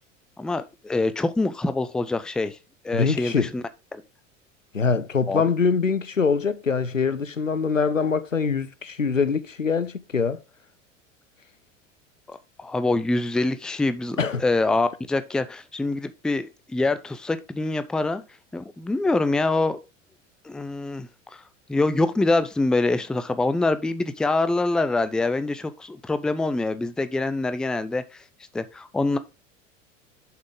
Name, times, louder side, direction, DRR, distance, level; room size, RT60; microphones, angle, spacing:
voice 1, 0.4-2.6 2.8-3.6 3.9-4.0 5.3-5.4 12.3-18.2 18.5-19.8 20.4-21.4 21.7-28.2 28.5-29.2, left 2 dB, ahead, 0.4 m, -25 dB
voice 2, 2.9-3.5 4.7-10.4 14.2-14.4, left 5 dB, 90° left, 0.6 m, -23 dB
7.4 x 5.7 x 3.7 m
figure-of-eight pair, 80°, 38 cm